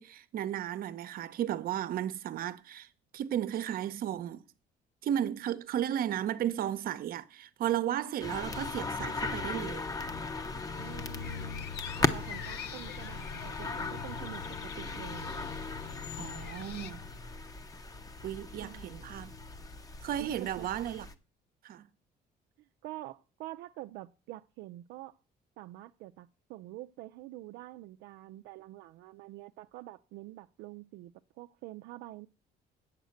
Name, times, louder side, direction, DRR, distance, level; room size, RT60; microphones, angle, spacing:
voice 1, 0.0-2.9 3.1-4.4 5.0-9.9 16.2-17.0 18.2-19.4 20.0-21.1 21.6-21.9, right 11 dB, 60° right, 0.8 m, -34 dB
sound 1, 8.2-21.1, left 4 dB, 20° left, 0.8 m, -37 dB
sound 2, 10.7-16.9, left 8 dB, 80° left, 0.6 m, -45 dB
voice 2, 10.7-11.7 12.0-15.5 18.6-19.1 20.2-20.7 22.8-25.2 25.6-32.3, right 16 dB, 90° right, 0.4 m, -46 dB
8.0 x 7.4 x 6.4 m
cardioid pair, 110°, 17 cm